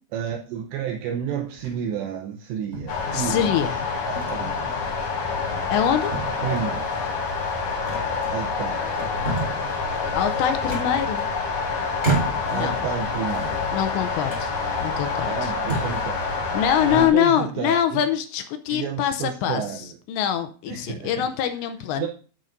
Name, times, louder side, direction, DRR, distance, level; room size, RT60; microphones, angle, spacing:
voice 1, 0.1-3.8 4.1-4.8 6.4-6.9 8.3-8.9 12.5-13.6 15.3-16.3 16.9-18.0 18.7-20.0 20.7-21.3 22.0-22.1, right 8 dB, 80° right, 2 dB, 2.8 m, -31 dB
sound 1, 1.5-1.9 2.7-3.5 4.2-4.4 4.8-5.0 5.5-5.9 6.1-6.8 7.9-8.6 8.9-9.7 10.7-11.5 12.0-12.7 13.2-13.9 14.3-14.5 15.1-15.2 15.6-16.1, right 3 dB, 15° right, 3.7 m, -31 dB
sound 2, 2.9-17.1, left 4 dB, 50° left, 2.9 m, -27 dB
voice 2, 3.1-3.8 5.7-6.2 10.2-11.3 12.5-12.8 13.7-14.6 14.8-15.5 16.5-19.6 20.1-22.1, left 9 dB, 85° left, 8 dB, 2.7 m, -24 dB
14.5 x 6.6 x 2.6 m, 0.39 s
omnidirectional pair, 5.4 m